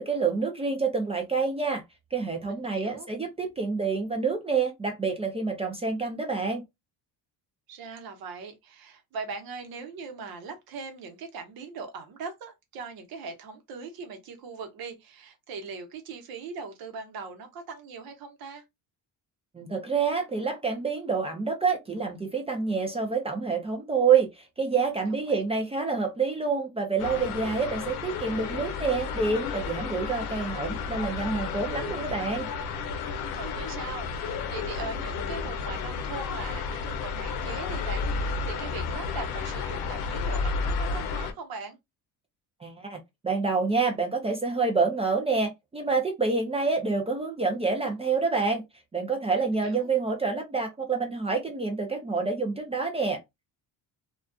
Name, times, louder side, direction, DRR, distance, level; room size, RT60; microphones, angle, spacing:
voice 1, 0.0-1.8 2.1-6.6 19.5-32.5 42.6-43.0 43.2-48.6 48.9-53.2, right 4 dB, 15° right, 0.4 m, -27 dB
voice 2, 2.4-3.1 7.7-18.6 25.1-25.4 33.3-41.8 49.4-49.9, right 4 dB, 70° right, 0.9 m, -40 dB
sound 1, 27.0-41.3, left 5 dB, 85° left, 0.6 m, -32 dB
2.4 x 2.3 x 2.2 m
cardioid pair, 130°, 37 cm